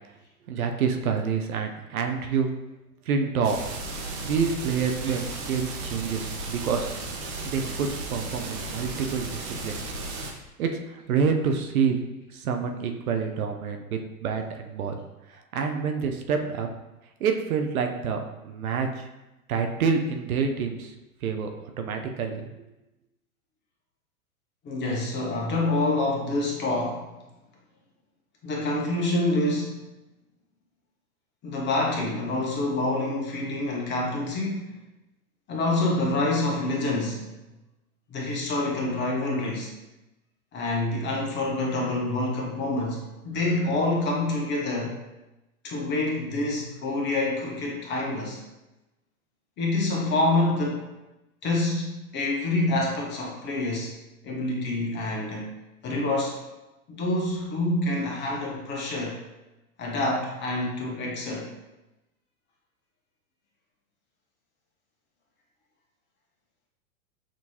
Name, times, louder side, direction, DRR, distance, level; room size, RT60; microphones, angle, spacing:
voice 1, 0.5-2.5 3.1-3.6 4.2-6.9 7.4-9.8 10.6-12.0 12.3-15.0 15.3-16.7 17.2-19.1 19.5-20.9 21.2-22.5, right 6 dB, 70° right, 5 dB, 0.7 m, -27 dB
sound 1, 3.4-10.3, right 2 dB, 45° right, 0.9 m, -35 dB
voice 2, 24.6-27.1 28.4-29.9 31.4-34.7 35.5-37.3 38.1-39.7 40.5-44.9 45.6-48.4 49.6-50.9 51.4-53.9 54.2-55.5 55.8-56.4 56.9-59.2 59.8-61.5, left 2 dB, 25° left, -2 dB, 1.0 m, -27 dB
6.0 x 3.0 x 2.8 m, 0.99 s
hypercardioid pair, 115°, 45 cm